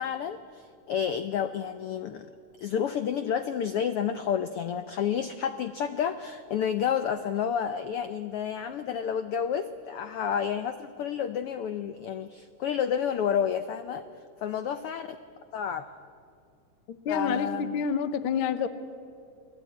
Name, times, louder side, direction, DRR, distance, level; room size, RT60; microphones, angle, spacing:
voice 1, 0.0-2.3 2.6-14.0 14.4-15.2 15.5-15.9 17.1-17.8, left 8 dB, 90° left, 10 dB, 1.2 m, -30 dB
voice 2, 16.9-18.7, left 6 dB, 70° left, 12 dB, 1.2 m, -28 dB
29.5 x 19.0 x 9.4 m, 2.4 s
omnidirectional pair, 3.6 m